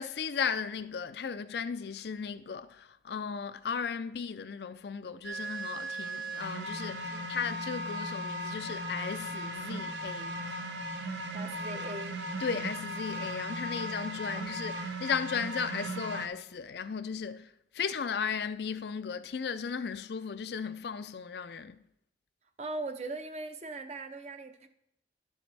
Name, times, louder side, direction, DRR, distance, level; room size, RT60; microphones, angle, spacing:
voice 1, 0.0-10.4 12.4-21.8, left 6 dB, 65° left, 0.4 m, -36 dB
sound 1, 5.2-16.3, right 1 dB, 80° right, 0.9 m, -37 dB
voice 2, 11.3-12.2 14.3-14.4 22.6-24.7, right 2 dB, 35° right, 0.6 m, -40 dB
12.0 x 7.1 x 3.4 m
head